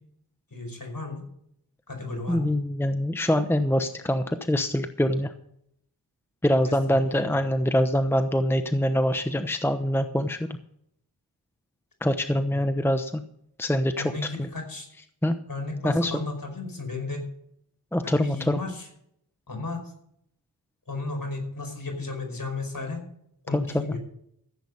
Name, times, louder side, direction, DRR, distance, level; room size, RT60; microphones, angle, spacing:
voice 1, 0.5-1.2 1.9-2.5 6.6-7.3 12.5-12.7 13.9-14.9 15.5-17.2 18.0-18.9 19.5-19.9 20.9-23.0 23.4-24.0, left 3 dB, 50° left, 3 dB, 5.1 m, -34 dB
voice 2, 2.3-5.3 6.4-10.5 12.0-13.2 13.6-14.1 15.2-15.4 15.8-16.2 17.9-18.6 23.5-23.6, equal, 5° left, 8 dB, 0.9 m, -24 dB
15.0 x 8.1 x 5.5 m, 0.72 s
cardioid pair, 45°, 42 cm